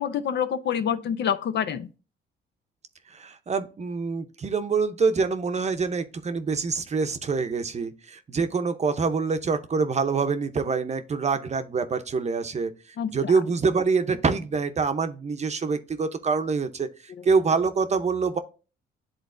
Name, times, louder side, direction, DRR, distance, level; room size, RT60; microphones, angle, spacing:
voice 1, 0.0-1.9 13.0-13.3, left 8 dB, 60° left, 0.6 m, -27 dB
voice 2, 3.1-12.7 13.1-16.9 17.2-18.4, right 4 dB, 35° right, 0.7 m, -25 dB
10.5 x 3.9 x 2.5 m
cardioid pair, 90°, 20 cm